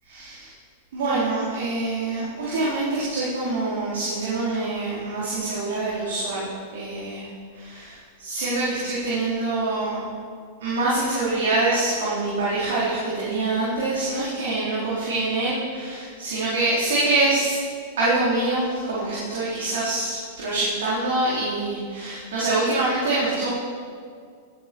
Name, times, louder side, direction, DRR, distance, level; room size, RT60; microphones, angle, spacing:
voice 1, 0.1-0.5 0.9-7.3 7.5-10.0 10.6-17.6 18.0-23.5, right 2 dB, 75° right, -9 dB, 4.2 m, -25 dB
16.5 x 9.8 x 4.7 m, 2.1 s
hypercardioid pair, 110°, 0 cm